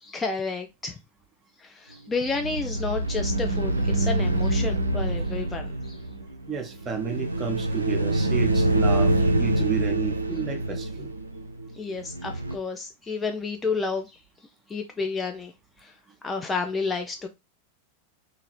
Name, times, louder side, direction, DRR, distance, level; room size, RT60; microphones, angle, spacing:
voice 1, 0.0-1.0 1.6-6.0 11.7-14.1 14.7-15.5 15.8-15.9 16.2-17.3, left 4 dB, 15° left, 0.3 m, -31 dB
sound 1, 2.2-12.6, right 1 dB, 80° right, 0.3 m, -25 dB
voice 2, 6.5-9.1 9.4-11.1, right 6 dB, 20° right, 0.7 m, -31 dB
2.7 x 2.4 x 3.0 m
figure-of-eight pair, 90°, 0 cm